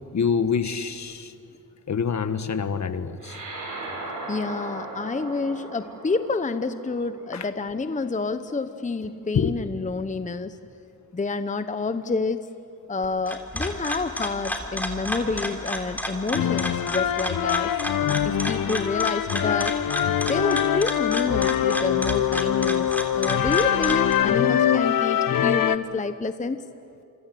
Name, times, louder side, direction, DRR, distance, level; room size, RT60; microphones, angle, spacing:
voice 1, 0.1-1.3 1.9-3.3 7.3-7.5 9.3-9.5, left 6 dB, 50° left, 10 dB, 1.5 m, -26 dB
sound 1, 3.2-7.9, right 2 dB, 60° right, 7.4 m, -38 dB
voice 2, 4.3-10.6 11.1-12.5 12.9-17.7 18.2-19.8 20.3-26.6, left 4 dB, 20° left, 11 dB, 0.8 m, -28 dB
sound 2, 13.0-24.1, equal, 5° left, 3.5 m, -32 dB
sound 3, 16.3-25.8, left 10 dB, 70° left, 1.0 m, -23 dB
28.0 x 24.5 x 7.7 m, 2.7 s
cardioid pair, 85°, 35 cm